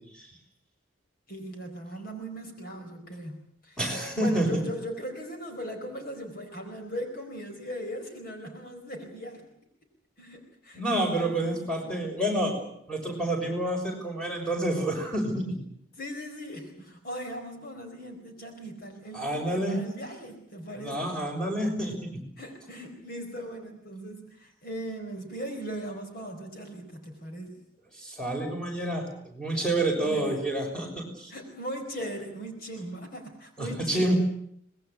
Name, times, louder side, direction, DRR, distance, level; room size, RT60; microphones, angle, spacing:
voice 1, 1.3-9.4 10.2-12.2 16.0-21.1 22.4-27.6 30.0-30.4 31.3-34.1, equal, 45° left, 4 dB, 4.6 m, -39 dB
voice 2, 3.8-4.5 10.7-12.5 12.9-15.6 19.1-19.8 20.8-22.0 28.0-31.3 33.6-34.1, right 1 dB, 5° left, 1 dB, 6.3 m, -28 dB
24.5 x 20.5 x 8.4 m, 0.70 s
head